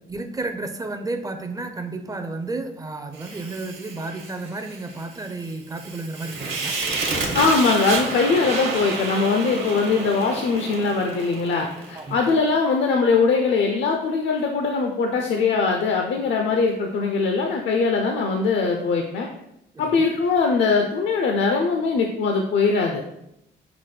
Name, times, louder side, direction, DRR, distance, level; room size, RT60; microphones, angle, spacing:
voice 1, 0.1-6.8 11.9-12.2 19.7-20.1, right 2 dB, 20° right, 7 dB, 0.4 m, -32 dB
Fire, 3.1-12.4, right 3 dB, 65° right, 1.1 m, -30 dB
voice 2, 7.3-19.3 19.8-23.0, left 4 dB, 65° left, 3 dB, 0.5 m, -21 dB
5.8 x 2.1 x 3.2 m, 0.80 s
cardioid pair, 90°, 20 cm